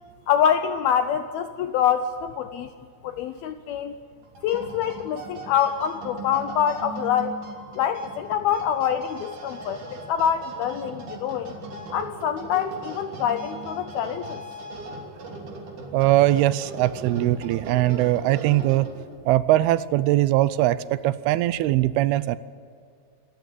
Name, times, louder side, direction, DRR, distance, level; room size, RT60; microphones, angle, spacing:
voice 1, 0.3-2.7 3.0-3.9 4.4-7.4 7.7-11.5 11.9-14.4, left 9 dB, 80° left, 10 dB, 2.3 m, -25 dB
sound 1, 4.2-19.2, right 2 dB, 45° right, 4.2 m, -39 dB
voice 2, 15.9-18.9 19.3-22.4, right 15 dB, 85° right, 16 dB, 2.2 m, -21 dB
27.0 x 14.5 x 9.2 m, 2.2 s
omnidirectional pair, 5.2 m